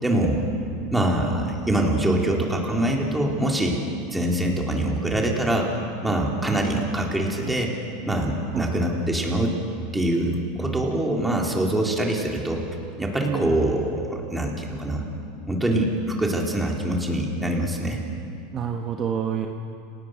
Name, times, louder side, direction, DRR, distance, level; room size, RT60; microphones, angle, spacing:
voice 1, 0.0-0.4 0.9-3.8 4.1-5.7 6.0-7.7 8.1-9.6 9.9-12.6 13.0-15.0 15.5-15.9 16.2-18.0, right 1 dB, 5° right, -1 dB, 4.1 m, -24 dB
voice 2, 13.2-13.6 18.5-19.5, right 8 dB, 35° right, 3 dB, 1.5 m, -28 dB
30.0 x 19.0 x 6.7 m, 2.5 s
supercardioid pair, 120°, 0 cm